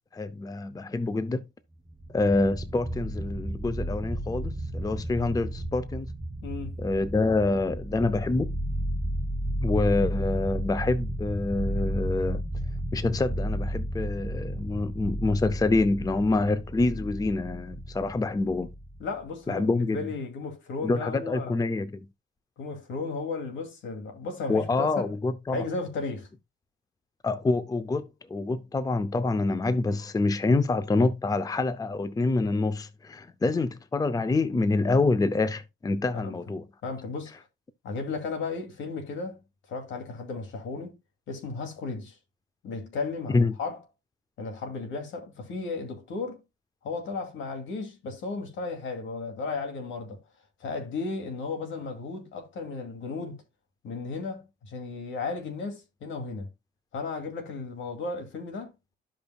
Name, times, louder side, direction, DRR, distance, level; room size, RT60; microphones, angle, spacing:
voice 1, 0.2-1.4 2.1-6.1 6.8-8.5 9.6-12.4 12.9-18.7 19.5-20.0 20.8-21.9 24.5-25.6 27.2-28.0 28.3-36.6 43.3-43.5, left 3 dB, 20° left, 0.6 m, -26 dB
sound 1, 1.9-19.2, right 1 dB, 15° right, 0.8 m, -33 dB
voice 2, 6.4-6.8 19.0-21.6 22.6-25.1 25.5-26.3 36.1-36.4 36.8-37.3 37.8-39.4 39.7-41.0 41.3-42.2 42.6-43.8 44.4-46.4 46.8-50.2 50.6-53.4 53.8-56.5 56.9-58.7, left 4 dB, 75° left, 2.5 m, -34 dB
13.0 x 5.2 x 2.3 m
cardioid pair, 90°, 20 cm